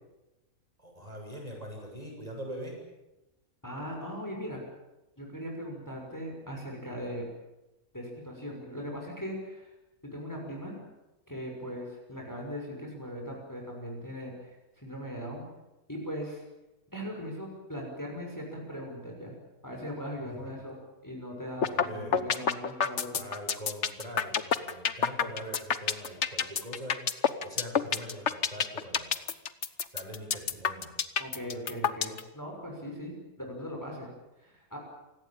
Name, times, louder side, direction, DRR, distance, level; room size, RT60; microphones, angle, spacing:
voice 1, 0.8-2.8 20.2-20.5 21.6-22.2 23.1-27.0 27.4-29.1 29.9-30.9, equal, 25° right, 0 dB, 7.1 m, -42 dB
voice 2, 3.6-4.6 5.2-7.2 7.9-9.7 10.0-10.8 11.3-15.5 15.9-16.4 16.9-19.3 19.6-23.2 31.2-34.1 34.4-34.8, equal, 10° left, 0 dB, 6.1 m, -39 dB
sound 1, 21.6-21.8 22.1-32.2, left 7 dB, 50° left, 1.4 m, -27 dB
28.5 x 17.5 x 8.8 m, 0.98 s
omnidirectional pair, 1.6 m